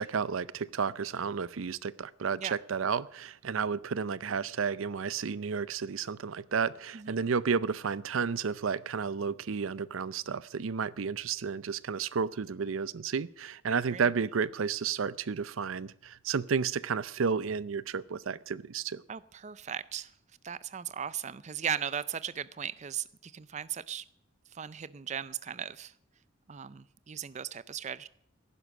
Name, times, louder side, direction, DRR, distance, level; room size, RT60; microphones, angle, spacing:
voice 1, 0.0-19.0, right 6 dB, 85° right, 19 dB, 0.5 m, -32 dB
voice 2, 13.7-14.0 19.1-20.1 20.4-24.0 24.5-25.9 26.5-28.1, right 8 dB, 35° right, 17 dB, 0.4 m, -37 dB
15.5 x 11.0 x 6.0 m, 0.73 s
head